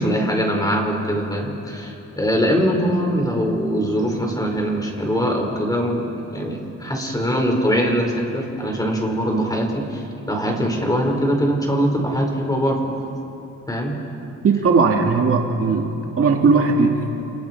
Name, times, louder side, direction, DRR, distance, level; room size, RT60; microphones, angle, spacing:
voice 1, 0.0-12.9 13.7-13.9, equal, 10° left, 1 dB, 5.3 m, -22 dB
voice 2, 14.4-17.1, right 4 dB, 50° right, 2 dB, 2.2 m, -18 dB
29.0 x 29.0 x 4.8 m, 3.0 s
cardioid pair, 90°, 30 cm